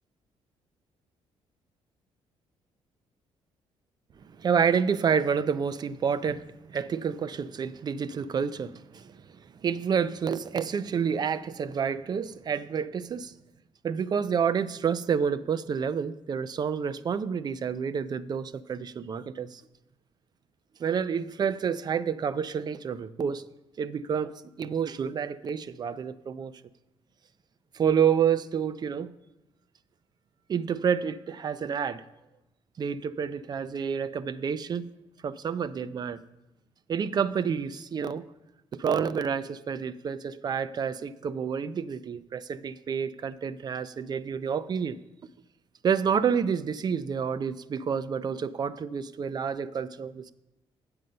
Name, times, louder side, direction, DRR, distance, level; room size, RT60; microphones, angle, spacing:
voice 1, 4.4-13.3 13.8-19.6 20.8-23.4 23.8-24.3 24.6-26.5 27.7-29.1 30.5-32.0 32.8-34.9 35.2-36.2 36.9-38.3 38.7-45.0 45.8-50.3, right 7 dB, 40° right, 0.4 m, -29 dB
7.8 x 7.6 x 5.4 m
cardioid pair, 110°, 11 cm